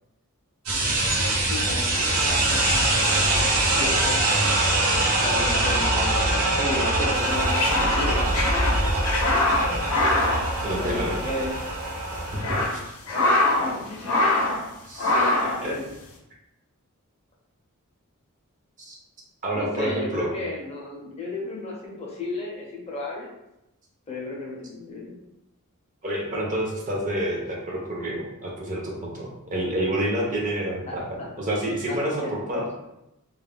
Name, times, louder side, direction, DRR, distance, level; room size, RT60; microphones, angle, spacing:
sound 1, 0.7-12.7, right 2 dB, 75° right, 0.8 m, -23 dB
voice 1, 1.3-4.2 5.2-8.9 10.8-11.6 13.1-14.2 15.1-15.9 19.5-23.3 24.1-25.2 30.9-31.3 31.9-32.6, left 2 dB, 30° left, -2 dB, 0.6 m, -34 dB
sound 2, 7.2-11.3 11.5-11.7 12.2-13.8 14.0-14.6 15.0-15.6, left 2 dB, 75° left, 0.6 m, -24 dB
voice 2, 10.6-11.2 12.3-12.4 12.7-12.9 14.9-15.1 15.6-15.7 18.8-19.0 19.4-20.3 26.0-32.6, right 1 dB, 35° right, -2 dB, 0.6 m, -28 dB
2.3 x 2.0 x 3.3 m, 0.89 s
head